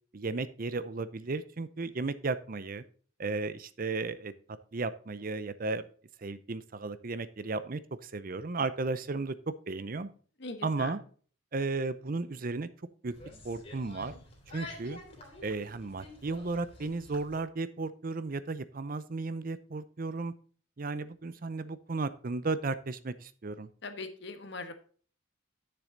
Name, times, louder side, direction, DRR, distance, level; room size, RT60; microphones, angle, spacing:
voice 1, 0.1-2.8 3.2-4.3 4.7-5.8 6.2-9.4 9.7-10.1 10.6-11.0 11.5-12.7 13.0-13.1 13.4-14.1 14.5-15.0 15.4-20.3 20.8-23.7, right 3 dB, 45° right, 14 dB, 0.6 m, -34 dB
voice 2, 10.4-10.9 23.8-24.7, left 3 dB, 55° left, 8 dB, 1.3 m, -41 dB
sound 1, 13.0-17.4, left 1 dB, 30° left, 3.1 m, -48 dB
10.0 x 6.9 x 3.9 m, 0.43 s
head